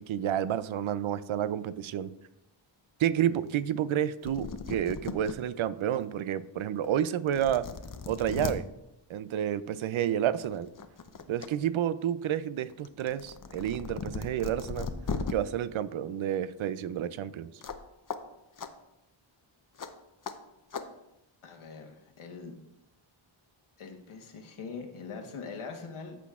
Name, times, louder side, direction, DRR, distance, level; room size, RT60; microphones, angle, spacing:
voice 1, 0.0-2.1 3.0-7.7 8.1-8.6 9.1-10.7 11.3-14.9 15.3-17.5, right 10 dB, 75° right, 15 dB, 0.5 m, -30 dB
sound 1, 4.0-4.1 4.2-5.3 5.9-6.0 6.8-6.9 7.3-8.5 9.8-10.0 10.4-11.5 11.8-15.3 17.6-17.8 18.1-18.2 18.6-18.7 19.8-19.9 20.2-20.3 20.7-20.8, left 5 dB, 40° left, 0.7 m, -37 dB
voice 2, 21.4-22.5 23.8-26.2, left 5 dB, 85° left, 2 dB, 1.3 m, -42 dB
14.0 x 6.1 x 2.4 m, 0.90 s
wide cardioid pair, 85°, 49 cm